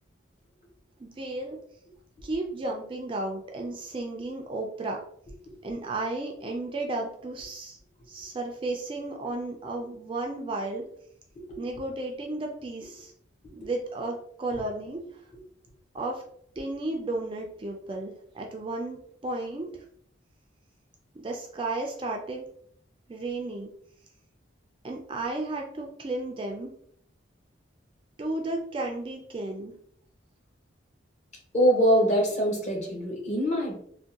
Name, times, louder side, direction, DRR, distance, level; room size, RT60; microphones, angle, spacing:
voice 1, 1.0-1.6 2.2-5.0 5.6-7.8 8.1-10.8 11.6-13.1 13.6-15.0 15.9-16.2 16.6-19.8 21.2-22.4 23.1-23.7 24.8-26.7 28.2-29.7, right 2 dB, 25° right, 1 dB, 0.3 m, -33 dB
voice 2, 31.5-33.7, equal, 35° left, -1 dB, 0.9 m, -23 dB
3.5 x 2.2 x 2.8 m, 0.65 s
head